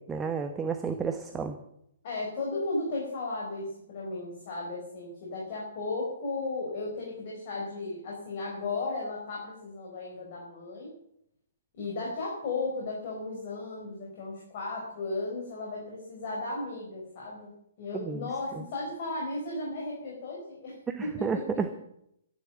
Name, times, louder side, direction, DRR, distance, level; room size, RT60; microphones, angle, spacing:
voice 1, 0.1-1.6 17.9-18.3 20.9-21.8, right 5 dB, 10° right, 6 dB, 1.1 m, -31 dB
voice 2, 2.0-10.9 11.8-17.5 17.8-21.4, left 2 dB, 40° left, -3 dB, 4.7 m, -35 dB
13.0 x 11.0 x 7.1 m, 0.75 s
figure-of-eight pair, 120°, 0 cm